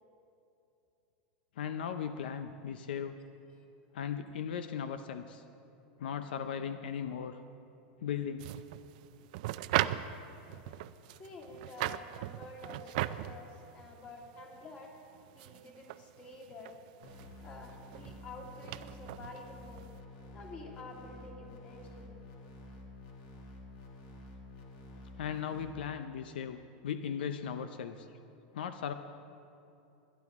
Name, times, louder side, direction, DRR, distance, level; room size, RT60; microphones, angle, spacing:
voice 1, 1.6-3.1 3.9-5.4 6.0-7.4 8.0-8.4 25.2-28.1 28.5-28.9, left 8 dB, 85° left, 9 dB, 0.6 m, -37 dB
sound 1, 8.4-20.0, right 14 dB, 55° right, 0.4 m, -39 dB
voice 2, 11.1-15.0 15.3-16.7 17.4-19.9 20.3-22.2, left 2 dB, 25° left, 0 dB, 2.3 m, -49 dB
sound 2, 17.0-25.6, left 2 dB, 60° left, 2.4 m, -50 dB
21.0 x 11.5 x 3.6 m, 2.8 s
supercardioid pair, 155°, 5 cm